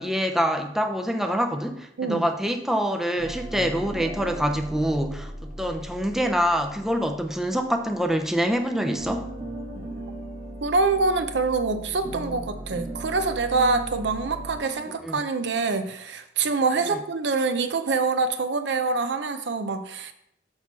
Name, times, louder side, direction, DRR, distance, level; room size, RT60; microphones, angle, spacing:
voice 1, 0.0-9.3 15.0-15.2 16.9-17.0, equal, ahead, 5 dB, 0.5 m, -25 dB
sound 1, 3.2-8.4 8.7-15.0, right 1 dB, 35° right, 1.6 m, -38 dB
voice 2, 10.6-20.1, right 4 dB, 75° right, 9 dB, 0.6 m, -25 dB
6.4 x 6.0 x 4.1 m, 0.76 s
head